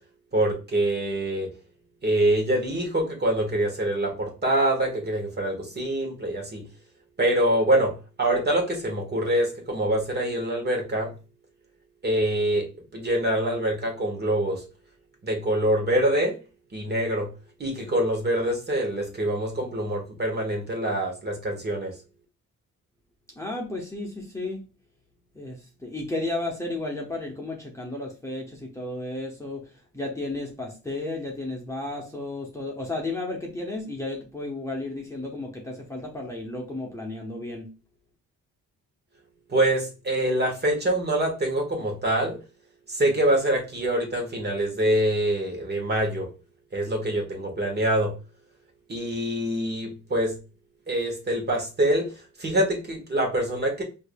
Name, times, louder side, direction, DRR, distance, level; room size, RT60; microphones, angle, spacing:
voice 1, 0.3-1.5 2.0-6.6 7.2-11.1 12.0-12.7 12.9-14.6 15.2-16.4 16.7-17.3 17.6-21.9 39.5-42.4 42.9-46.3 46.7-48.1 48.9-50.3 50.9-52.1 52.4-53.8, right 1 dB, 35° right, 1 dB, 1.5 m, -25 dB
voice 2, 23.3-24.6 25.3-37.7, left 2 dB, 10° left, -1 dB, 1.1 m, -33 dB
4.6 x 2.8 x 2.3 m, 0.31 s
cardioid pair, 90°, 30 cm